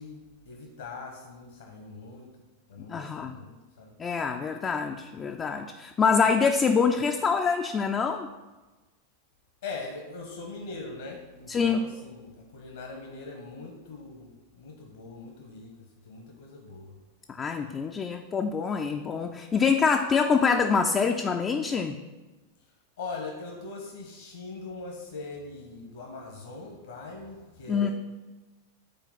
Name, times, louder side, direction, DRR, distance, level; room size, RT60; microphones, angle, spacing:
voice 1, 0.0-2.3 2.7-3.9 9.6-15.7 16.0-17.0 23.0-27.9, left 3 dB, 65° left, 1 dB, 1.2 m, -41 dB
voice 2, 2.9-3.4 4.0-8.3 11.5-11.9 17.4-21.9 27.7-27.9, left 5 dB, 20° left, 4 dB, 0.4 m, -25 dB
7.7 x 4.4 x 5.7 m, 1.2 s
figure-of-eight pair, 90°, 0 cm